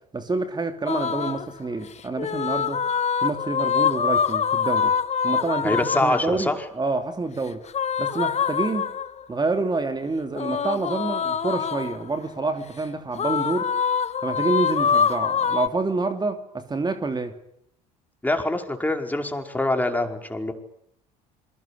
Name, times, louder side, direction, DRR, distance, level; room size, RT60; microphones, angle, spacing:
voice 1, 0.1-2.8 3.2-4.9 5.2-7.6 8.0-8.9 9.3-13.7 14.2-17.3, right 3 dB, 20° right, 3.0 m, -27 dB
sound 1, 0.9-1.5 2.2-6.3 7.7-9.2 10.3-12.1 13.2-15.7, left 7 dB, 35° left, 1.8 m, -24 dB
voice 2, 5.6-6.6 18.2-20.5, left 1 dB, 10° left, 4.9 m, -24 dB
27.0 x 22.0 x 8.6 m
hypercardioid pair, 70°, 19 cm